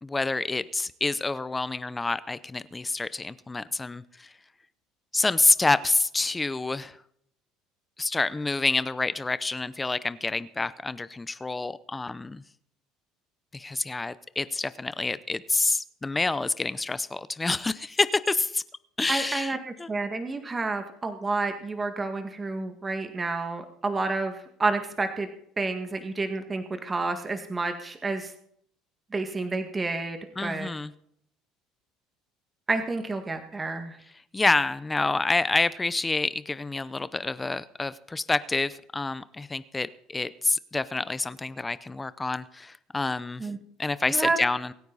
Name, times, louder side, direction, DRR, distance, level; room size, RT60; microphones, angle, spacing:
voice 1, 0.0-4.3 5.1-7.0 8.0-12.4 13.5-18.6 19.0-19.9 30.4-30.9 34.3-43.5 43.8-44.7, left 3 dB, 15° left, 16 dB, 0.7 m, -28 dB
voice 2, 19.1-25.3 25.6-28.3 29.1-30.7 32.7-34.0 43.4-43.6 44.1-44.4, right 3 dB, 20° right, 7 dB, 1.9 m, -30 dB
24.5 x 9.5 x 4.1 m, 0.68 s
supercardioid pair, 95°, 0 cm